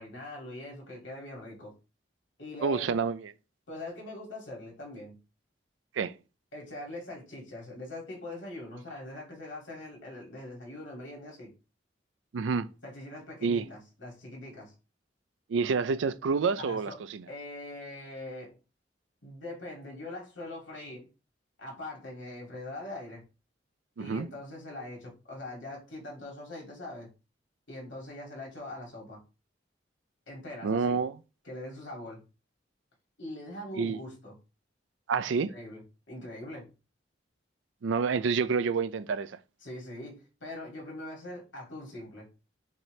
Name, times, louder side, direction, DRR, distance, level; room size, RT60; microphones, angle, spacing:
voice 1, 0.0-1.7 2.4-3.0 3.7-5.2 6.5-11.5 12.8-14.7 16.6-17.0 17.3-18.6 19.2-21.1 21.6-23.2 24.0-27.1 27.7-29.2 30.3-31.0 31.4-32.2 33.2-34.3 35.3-36.7 39.6-42.3, left 1 dB, 85° left, 2.4 m, -42 dB
voice 2, 2.6-3.3 5.9-6.1 12.3-12.7 13.4-13.7 15.5-17.2 24.0-24.3 30.6-31.1 33.8-34.0 35.1-35.5 37.8-39.4, right 5 dB, 90° right, 0.4 m, -28 dB
5.9 x 2.8 x 3.2 m
head